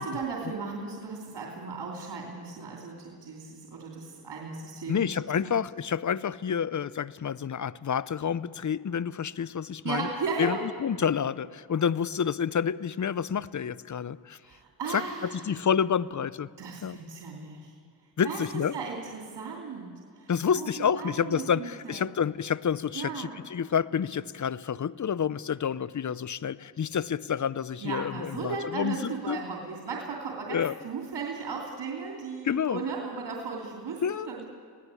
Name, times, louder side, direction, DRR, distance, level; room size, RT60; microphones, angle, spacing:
voice 1, 0.0-5.6 9.8-10.6 14.4-15.6 16.6-17.7 18.2-22.1 22.9-23.4 27.8-34.5, right 4 dB, 85° right, -1 dB, 2.8 m, -36 dB
voice 2, 4.9-10.1 10.4-14.4 14.9-16.5 16.8-17.0 18.2-18.8 20.3-29.4 30.5-30.7 32.4-32.8 34.0-34.3, left 7 dB, 45° left, 19 dB, 0.7 m, -29 dB
26.5 x 17.5 x 8.3 m, 2.1 s
cardioid pair, 45°, 41 cm